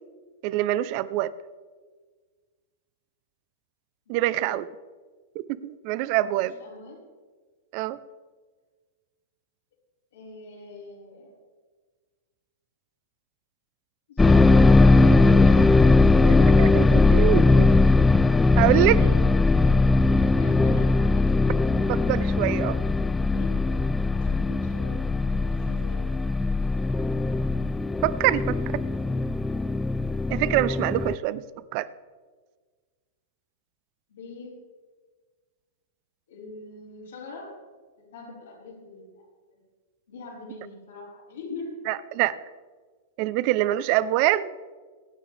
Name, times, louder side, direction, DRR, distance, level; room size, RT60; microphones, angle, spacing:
voice 1, 0.4-1.3 4.1-4.7 5.3-6.5 7.7-8.0 16.2-17.7 18.6-19.0 21.9-22.8 28.0-28.6 30.3-31.4 31.7-31.9 41.9-42.5 43.2-44.5, right 15 dB, 50° right, 17 dB, 0.7 m, -25 dB
voice 2, 4.1-4.5 6.3-7.0 10.1-11.3 14.1-16.5 18.9-19.2 20.3-21.5 22.4-22.5 23.3-23.6 24.1-26.1 28.3-29.1 34.1-34.5 36.3-37.6 38.0-39.3 39.5-39.6 40.1-41.9, left 4 dB, 80° left, -6 dB, 5.2 m, -41 dB
sound 1, 14.2-31.2, left 3 dB, 10° left, 0.4 m, -20 dB
23.0 x 9.5 x 3.5 m, 1.5 s
hypercardioid pair, 110°, 0 cm